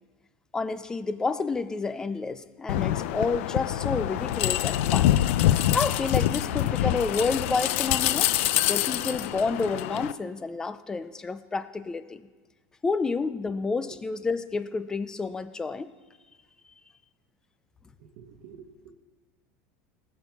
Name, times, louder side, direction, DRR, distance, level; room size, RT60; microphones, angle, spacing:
voice 1, 0.5-5.1 5.7-8.3 8.7-12.3 12.8-15.9, left 4 dB, 10° left, 13 dB, 0.4 m, -29 dB
sound 1, 2.7-10.1, left 13 dB, 80° left, 0.5 m, -25 dB
voice 2, 18.0-18.9, right 7 dB, 60° right, 1 dB, 1.2 m, -49 dB
19.0 x 7.2 x 4.6 m, 1.3 s
cardioid pair, 175°, 7 cm